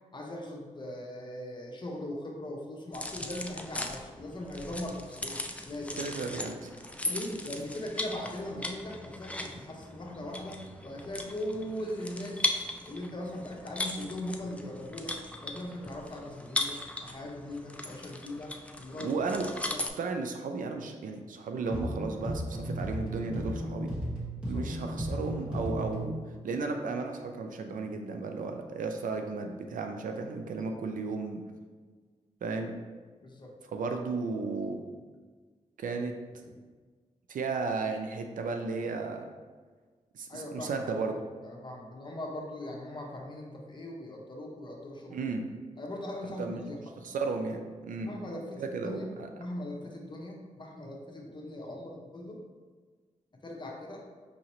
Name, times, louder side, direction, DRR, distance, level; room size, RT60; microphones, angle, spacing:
voice 1, 0.1-6.0 7.0-12.5 12.8-15.2 15.4-19.2 19.7-19.8 24.4-24.6 33.2-33.5 36.5-36.6 40.3-40.8 41.4-45.2 45.8-46.8 48.0-49.1 49.3-52.4 53.4-54.0, left 1 dB, 35° left, -1 dB, 0.8 m, -40 dB
sound 1, 2.9-19.9, left 1 dB, 10° left, 0.3 m, -38 dB
voice 2, 6.0-6.7 19.0-19.5 20.0-23.9 24.5-26.2 26.4-31.4 32.4-32.7 33.7-34.8 35.8-36.1 37.3-39.2 40.1-41.1 45.1-45.5 46.4-46.6 47.0-48.1 48.6-49.3, right 4 dB, 90° right, 5 dB, 0.4 m, -34 dB
sound 2, 21.7-26.2, equal, 10° right, 1.3 m, -35 dB
5.3 x 2.8 x 3.0 m, 1.5 s
wide cardioid pair, 85°, 13 cm